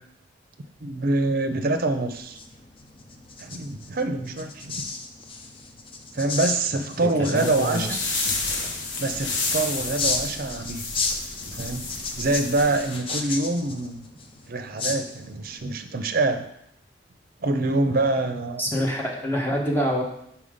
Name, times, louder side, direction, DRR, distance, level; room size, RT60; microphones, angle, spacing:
voice 1, 0.8-2.4 3.4-4.9 6.1-8.0 9.0-10.8 11.5-11.9 12.2-14.0 14.5-16.5 17.4-18.6, right 2 dB, 55° right, 7 dB, 0.6 m, -25 dB
sound 1, 2.0-15.6, left 4 dB, 30° left, 0.6 m, -34 dB
voice 2, 7.0-8.2 18.6-20.0, equal, 10° left, -2 dB, 1.1 m, -26 dB
sound 2, 7.3-13.0, left 3 dB, 75° left, 1.0 m, -31 dB
5.5 x 4.5 x 5.0 m, 0.76 s
head